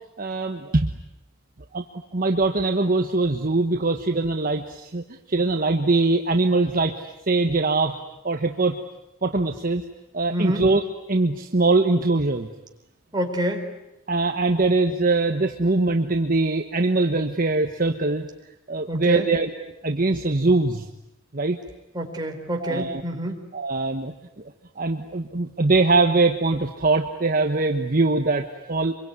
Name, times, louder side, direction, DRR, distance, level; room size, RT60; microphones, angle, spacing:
voice 1, 0.2-0.9 1.7-1.8 2.1-7.9 8.2-8.8 9.2-9.8 10.1-10.8 11.1-12.5 14.1-18.3 18.7-19.5 19.8-20.9 21.3-21.6 22.6-23.0 23.5-24.1 24.8-28.9, right 3 dB, 40° right, 5 dB, 1.3 m, -22 dB
voice 2, 10.3-10.6 13.1-13.7 18.9-19.3 21.9-23.4, equal, 20° right, 2 dB, 4.1 m, -27 dB
26.0 x 23.0 x 9.6 m, 0.90 s
head